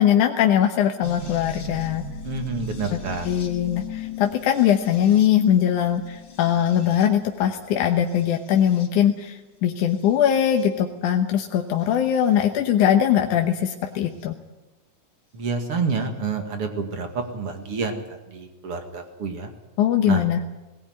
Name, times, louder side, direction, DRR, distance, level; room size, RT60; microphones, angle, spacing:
voice 1, 0.0-2.0 2.9-3.0 3.2-14.4 19.8-20.4, left 10 dB, 70° left, 4 dB, 2.4 m, -21 dB
sound 1, 1.0-9.2 9.9-10.7 11.8-12.5 14.2-14.3 16.0-16.1, left 4 dB, 30° left, 2.7 m, -39 dB
voice 2, 2.2-3.3 15.3-19.5 20.0-20.3, right 4 dB, 45° right, 5 dB, 2.7 m, -28 dB
19.0 x 17.5 x 9.5 m, 1.1 s
omnidirectional pair, 3.8 m